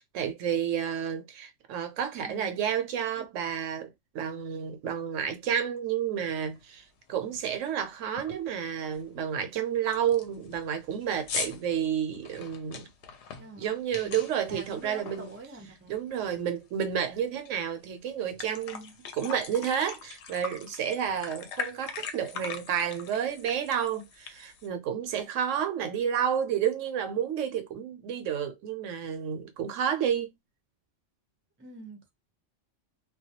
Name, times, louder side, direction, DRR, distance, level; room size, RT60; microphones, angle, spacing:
voice 1, 0.0-12.9 13.6-15.3 15.9-30.3, right 8 dB, 80° right, 0.9 m, -30 dB
voice 2, 2.2-2.6 3.2-3.3 13.3-13.7 14.0-14.2 14.5-15.9 31.6-32.1, right 2 dB, 15° right, 0.4 m, -45 dB
sound 1, 6.5-6.6 7.1-7.4 7.7-7.8 8.2-8.5 8.9-9.0 9.5-9.6 9.9-15.9 16.2-17.5 17.9-18.0 18.2-24.7, left 6 dB, 70° left, 0.8 m, -41 dB
2.2 x 2.2 x 2.7 m
omnidirectional pair, 1.3 m